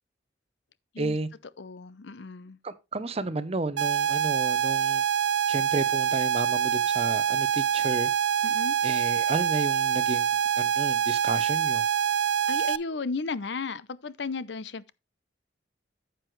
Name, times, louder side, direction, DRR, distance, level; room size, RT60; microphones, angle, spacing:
voice 1, 1.0-1.3 2.6-5.0 5.5-8.1 8.8-10.3 10.6-11.8, right 2 dB, 35° right, 0.7 m, -32 dB
voice 2, 1.6-2.6 8.4-8.8 12.5-14.9, left 4 dB, 70° left, 0.7 m, -34 dB
sound 1, 3.8-12.8, right 9 dB, 75° right, 0.4 m, -25 dB
9.6 x 7.7 x 3.2 m
head